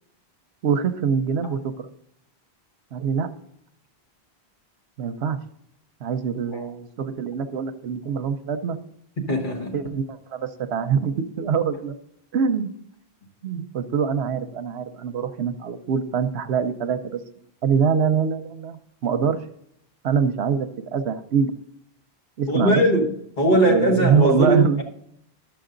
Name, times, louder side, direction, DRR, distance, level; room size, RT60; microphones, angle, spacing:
voice 1, 0.6-1.9 2.9-3.3 5.0-5.4 6.0-8.8 9.7-12.0 12.3-12.7 13.4-17.2 17.6-19.4 20.0-21.5 22.4-22.8 23.6-24.8, right 6 dB, 80° right, 9 dB, 1.0 m, -24 dB
voice 2, 9.3-9.8 22.5-24.8, right 1 dB, 50° left, 1 dB, 1.6 m, -20 dB
11.5 x 7.0 x 3.8 m, 0.73 s
omnidirectional pair, 1.1 m